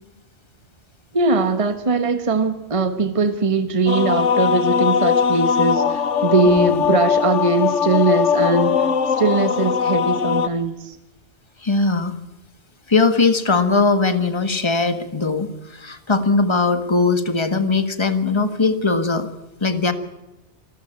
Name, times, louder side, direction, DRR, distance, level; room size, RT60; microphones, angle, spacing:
voice 1, 1.1-8.8 9.2-11.0, right 3 dB, 25° right, 9 dB, 1.5 m, -20 dB
sound 1, 3.9-10.5, left 7 dB, 70° left, 1.3 m, -20 dB
voice 2, 6.5-6.8 11.6-12.1 12.9-19.3 19.6-19.9, left 3 dB, 20° left, 10 dB, 1.7 m, -20 dB
26.5 x 14.0 x 8.8 m, 1.0 s
omnidirectional pair, 1.3 m